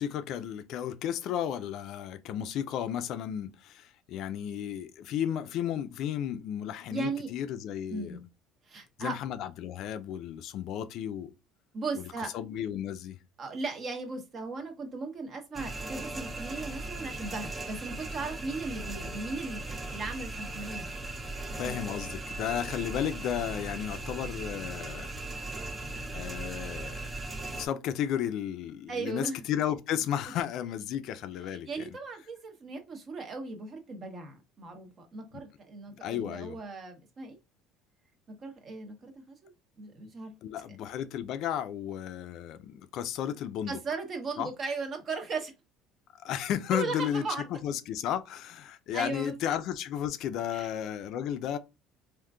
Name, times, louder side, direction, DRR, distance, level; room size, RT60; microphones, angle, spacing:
voice 1, 0.0-8.2 9.0-11.3 12.0-12.1 12.3-13.2 21.6-25.1 26.1-27.1 27.5-31.9 36.0-36.6 40.4-43.8 44.4-44.5 46.2-47.2 47.5-51.6, left 10 dB, 60° left, 0.4 m, -33 dB
voice 2, 6.9-7.3 7.9-8.2 8.7-9.2 11.7-12.3 13.4-21.0 28.9-29.4 31.5-37.4 38.4-40.3 40.7-40.8 43.7-45.5 46.7-47.5 48.9-49.6 50.5-50.7, right 3 dB, 40° right, 0.9 m, -37 dB
sound 1, 15.5-27.7, right 2 dB, 20° right, 0.5 m, -38 dB
3.6 x 2.5 x 2.3 m
cardioid pair, 115°, 0 cm